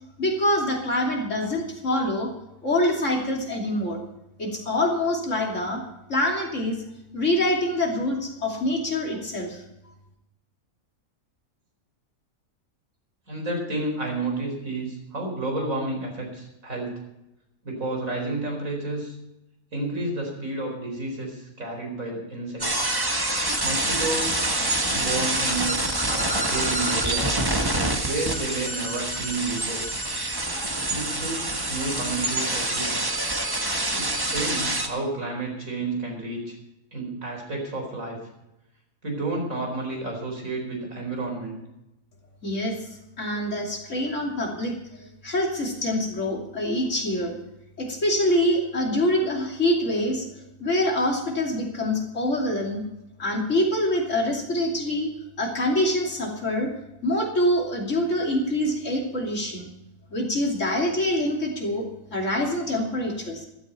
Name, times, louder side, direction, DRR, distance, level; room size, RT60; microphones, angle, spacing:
voice 1, 0.2-2.3 2.6-4.0 4.4-5.8 6.1-6.8 7.1-9.6 42.4-42.8 43.2-47.4 47.8-50.2 50.6-52.8 53.2-56.7 57.0-59.7 60.1-61.8 62.1-63.5, left 1 dB, 60° left, 0 dB, 3.2 m, -25 dB
voice 2, 13.3-17.0 17.6-19.1 19.7-22.9 23.6-24.4 24.9-27.3 28.0-29.8 30.9-32.9 33.9-36.5 36.9-38.2 39.0-41.6, right 2 dB, 70° right, 1 dB, 4.9 m, -31 dB
sound 1, 22.6-34.9, right 1 dB, 15° right, 1.5 m, -26 dB
15.0 x 13.5 x 4.5 m, 0.88 s
omnidirectional pair, 1.5 m